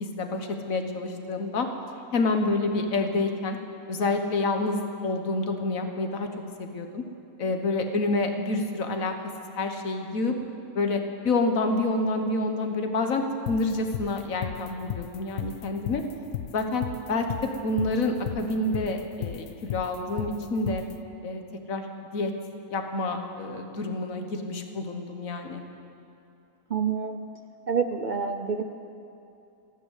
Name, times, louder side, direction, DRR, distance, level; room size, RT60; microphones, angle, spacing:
voice 1, 0.2-1.7 2.1-3.6 3.9-6.3 6.6-7.0 7.4-9.1 9.5-10.3 10.7-16.0 16.5-20.8 21.2-21.4 21.7-21.8 22.1-22.3 22.7-25.6, left 2 dB, 60° left, 5 dB, 1.6 m, -28 dB
sound 1, 13.5-20.9, left 13 dB, 80° left, 1.1 m, -34 dB
voice 2, 26.7-27.2 27.7-28.6, right 6 dB, 75° right, 6 dB, 0.4 m, -27 dB
14.0 x 12.0 x 8.2 m, 2.7 s
omnidirectional pair, 1.6 m